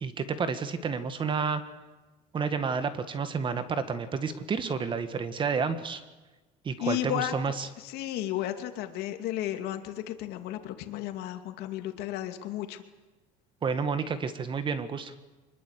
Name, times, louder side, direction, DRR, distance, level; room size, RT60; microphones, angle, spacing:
voice 1, 0.0-1.6 2.3-6.0 6.7-7.7 13.6-15.1, right 5 dB, 30° right, 11 dB, 1.8 m, -30 dB
voice 2, 6.8-7.3 7.8-12.8, left 12 dB, 70° left, 7 dB, 2.5 m, -33 dB
25.0 x 21.0 x 8.4 m, 1.2 s
cardioid pair, 145°, 18 cm